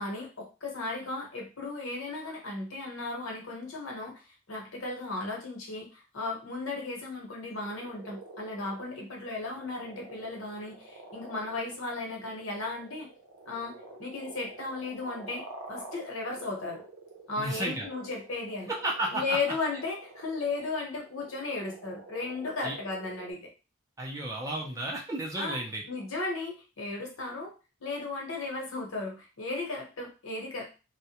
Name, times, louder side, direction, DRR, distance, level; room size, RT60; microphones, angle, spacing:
voice 1, 0.0-4.1 4.5-13.1 13.4-13.7 14.0-15.4 15.7-16.8 17.3-18.7 19.1-23.5 25.4-25.6 25.9-27.5 27.8-30.7, left 3 dB, 75° left, -1 dB, 0.9 m, -35 dB
sound 1, 7.3-23.3, right 2 dB, 70° right, 0.6 m, -48 dB
voice 2, 17.4-17.9 18.7-19.4 22.6-22.7 24.0-25.8, right 1 dB, 15° right, -2 dB, 0.4 m, -33 dB
2.2 x 2.1 x 2.8 m, 0.31 s
head